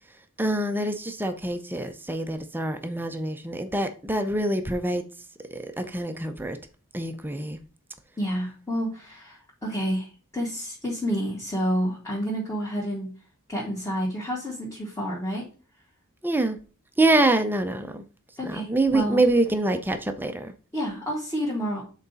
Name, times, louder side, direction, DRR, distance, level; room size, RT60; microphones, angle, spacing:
voice 1, 0.4-5.0 5.5-6.6 6.9-7.6 16.2-16.6 17.0-18.0 18.5-20.5, right 2 dB, 10° right, 0.6 m, -25 dB
voice 2, 8.2-13.1 13.5-15.5 18.4-19.3 20.7-21.8, equal, 15° left, 1.7 m, -29 dB
7.8 x 4.0 x 4.0 m
head